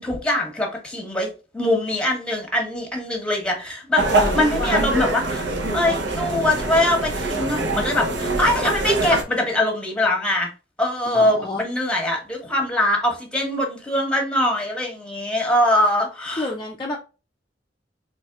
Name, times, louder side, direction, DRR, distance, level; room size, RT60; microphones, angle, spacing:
voice 1, 0.0-5.4 5.7-10.5 10.8-16.5, left 1 dB, 5° left, 1.0 m, -22 dB
voice 2, 4.0-5.1 11.1-11.6 16.4-17.0, left 2 dB, 25° left, 0.4 m, -29 dB
sound 1, 4.0-9.2, right 2 dB, 70° right, 0.8 m, -24 dB
4.1 x 3.1 x 2.3 m
head